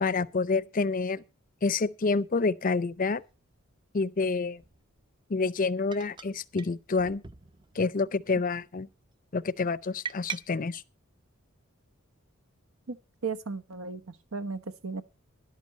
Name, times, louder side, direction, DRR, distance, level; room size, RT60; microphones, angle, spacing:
voice 1, 0.0-1.2 1.6-3.2 3.9-4.6 5.3-7.2 7.8-8.9 9.3-10.8, left 4 dB, 40° left, 0.5 m, -28 dB
sound 1, 2.9-3.0 4.6-4.8 5.9-6.3 6.6-6.7 7.0-7.9 8.2-8.6 10.0-10.4, right 6 dB, 20° right, 0.5 m, -40 dB
voice 2, 13.2-15.0, right 4 dB, 85° right, 1.1 m, -35 dB
12.5 x 11.0 x 4.2 m
head